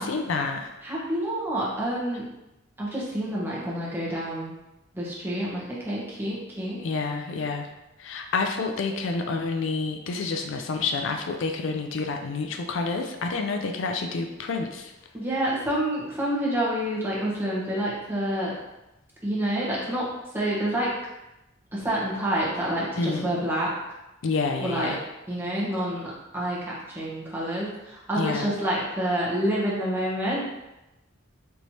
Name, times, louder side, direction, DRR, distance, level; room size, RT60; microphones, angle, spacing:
voice 1, 0.0-0.7 6.8-7.7 8.0-14.9 23.0-23.3 24.2-25.0 28.2-28.5, left 4 dB, 70° left, 4 dB, 0.4 m, -28 dB
voice 2, 0.8-2.2 2.8-4.5 4.9-6.8 15.1-18.5 19.2-20.1 20.3-20.9 21.7-23.7 24.6-25.0 25.3-30.6, right 1 dB, 10° right, -7 dB, 1.0 m, -28 dB
4.4 x 3.2 x 2.8 m, 0.98 s
head